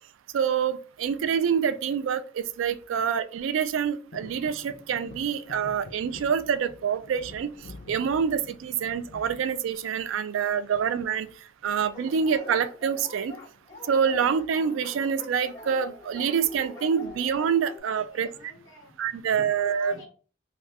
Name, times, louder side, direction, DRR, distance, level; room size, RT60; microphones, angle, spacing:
voice 1, 0.3-7.5 7.9-11.3 11.6-13.4 13.9-18.3 19.0-20.0, right 7 dB, 85° right, 0.3 m, -26 dB
sound 1, 4.1-10.3 10.7-11.3 12.6-13.0 13.3-13.4 13.6-14.0 14.8-15.7 16.2-16.3, left 2 dB, 55° left, 0.4 m, -48 dB
voice 2, 10.4-10.8 11.6-11.7 17.9-20.1, left 1 dB, 80° left, 0.9 m, -49 dB
Dog, 11.9-17.8, left 3 dB, 15° left, 1.5 m, -45 dB
2.6 x 2.4 x 3.3 m
head